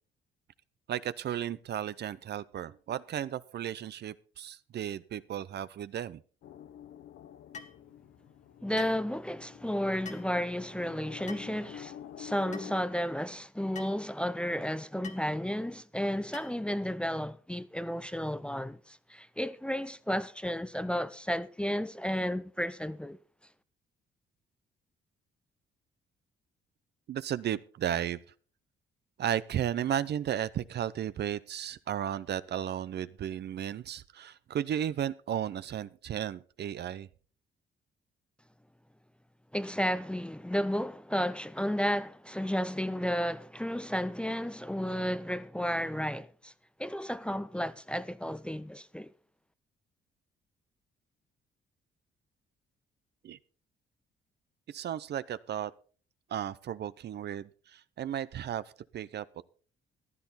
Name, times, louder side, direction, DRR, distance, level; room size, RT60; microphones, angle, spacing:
voice 1, 0.9-6.2 27.1-28.2 29.2-37.1 53.2-53.4 54.7-55.7 56.3-59.3, right 10 dB, 55° right, 0.6 m, -34 dB
sound 1, 6.4-12.9, left 10 dB, 80° left, 0.9 m, -49 dB
sound 2, 7.5-7.8 8.8-9.0 10.0-10.3 11.3-11.5 12.5-12.7 13.7-14.0 15.0-15.3 16.3-16.6, left 5 dB, 35° left, 1.7 m, -45 dB
voice 2, 8.6-23.2 39.5-46.5 46.8-49.1, equal, 5° left, 0.6 m, -33 dB
14.5 x 10.5 x 4.1 m
cardioid pair, 90°, 20 cm